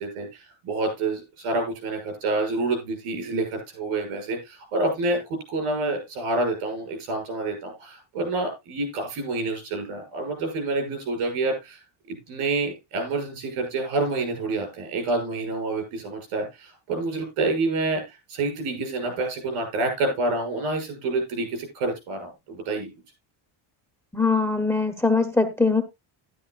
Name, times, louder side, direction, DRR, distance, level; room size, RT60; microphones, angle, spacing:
voice 1, 0.0-11.8 12.1-22.9, right 2 dB, 85° right, 5 dB, 6.5 m, -28 dB
voice 2, 24.1-25.8, left 4 dB, 5° left, 9 dB, 1.1 m, -22 dB
12.0 x 11.5 x 2.5 m, 0.21 s
cardioid pair, 125°, 50 cm